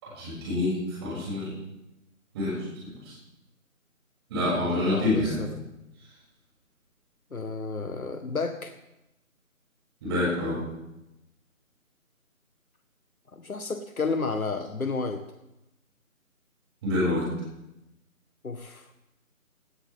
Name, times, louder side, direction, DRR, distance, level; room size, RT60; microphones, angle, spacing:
voice 1, 0.0-1.5 2.3-3.1 4.3-5.4 10.0-10.7 16.8-17.2, left 1 dB, 15° right, -7 dB, 7.1 m, -27 dB
voice 2, 4.5-5.7 7.3-8.7 13.3-15.2 18.4-18.9, left 4 dB, 75° left, 6 dB, 1.7 m, -32 dB
18.0 x 18.0 x 3.7 m, 0.91 s
figure-of-eight pair, 160°, 43 cm